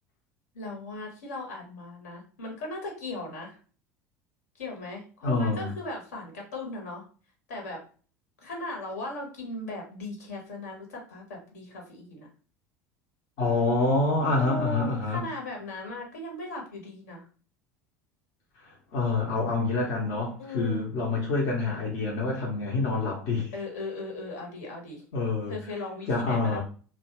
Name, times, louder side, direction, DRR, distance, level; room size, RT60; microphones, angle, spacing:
voice 1, 0.5-3.6 4.6-7.0 7.5-7.8 8.4-12.3 14.4-17.2 20.4-20.9 23.5-25.0 25.5-26.6, left 2 dB, 70° left, 1 dB, 1.1 m, -37 dB
voice 2, 5.2-5.7 13.4-15.2 18.6-23.5 25.1-25.5 26.1-26.6, left 3 dB, 50° left, -2 dB, 0.8 m, -27 dB
2.8 x 2.3 x 2.9 m, 0.40 s
figure-of-eight pair, 70°, 9 cm